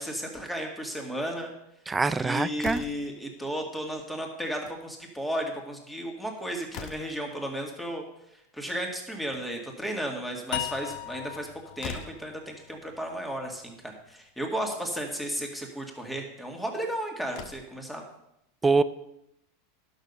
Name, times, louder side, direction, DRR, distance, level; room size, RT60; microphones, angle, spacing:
voice 1, 0.0-1.5 2.2-8.0 8.5-11.5 11.8-18.0, equal, ahead, 1 dB, 2.0 m, -34 dB
voice 2, 1.9-2.8 18.6-18.8, right 4 dB, 15° right, 14 dB, 0.5 m, -24 dB
Slam, 2.6-3.2 4.4-4.8 5.1-5.2 5.5-5.6 6.2-7.3 9.0-9.7 11.3-11.4 11.8-12.3 13.4-13.5 13.9-14.0 14.8-15.1 16.8-16.9 17.2-17.8, left 7 dB, 45° left, 1.0 m, -42 dB
sound 1, 10.5-13.7, left 15 dB, 65° left, 0.4 m, -38 dB
11.5 x 6.5 x 5.4 m, 0.83 s
supercardioid pair, 130°, 0 cm